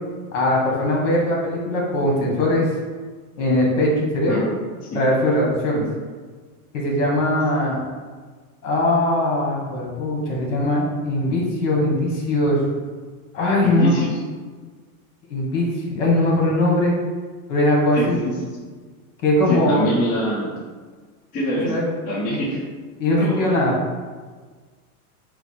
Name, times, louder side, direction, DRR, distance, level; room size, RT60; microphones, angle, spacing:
voice 1, 0.3-2.6 3.4-4.4 4.9-5.8 6.7-7.8 8.6-12.6 13.3-14.1 15.3-16.9 17.5-18.2 19.2-19.9 21.6-21.9 22.3-22.4 23.0-23.8, left 1 dB, 60° left, -2 dB, 1.3 m, -20 dB
voice 2, 13.6-14.2 17.9-18.4 19.5-20.5 21.3-21.7 22.1-22.6 23.1-23.6, equal, 20° left, -7 dB, 0.7 m, -25 dB
4.5 x 2.1 x 4.4 m, 1.4 s
supercardioid pair, 165°, 44 cm